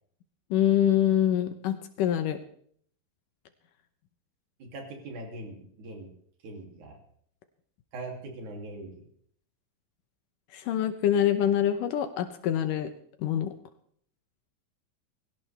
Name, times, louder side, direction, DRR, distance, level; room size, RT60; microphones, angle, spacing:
voice 1, 0.5-2.4 10.5-12.9 13.2-13.5, left 10 dB, 75° left, 8 dB, 2.4 m, -25 dB
voice 2, 4.6-6.1 6.4-7.0 7.9-9.0, right 2 dB, 60° right, 1 dB, 4.2 m, -41 dB
22.0 x 17.0 x 3.4 m, 0.63 s
omnidirectional pair, 3.9 m